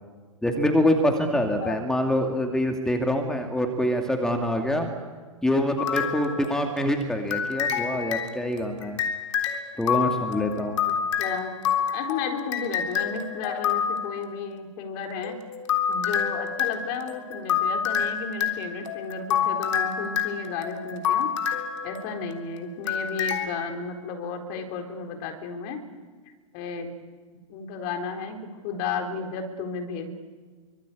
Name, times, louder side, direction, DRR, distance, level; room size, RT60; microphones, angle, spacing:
voice 1, 0.4-4.9 5.4-9.0 9.8-10.8, left 1 dB, 5° left, 4 dB, 2.6 m, -25 dB
voice 2, 1.3-1.8 10.9-11.5 11.9-15.3 15.9-21.3 21.8-25.8 26.5-26.9 27.5-28.4 28.6-30.1, left 5 dB, 40° left, 5 dB, 4.3 m, -33 dB
sound 1, 5.8-6.9 7.3-14.2 15.2-22.4 22.9-23.5, left 8 dB, 60° left, 3.5 m, -28 dB
28.0 x 24.5 x 8.6 m, 1.5 s
figure-of-eight pair, 100°, 18 cm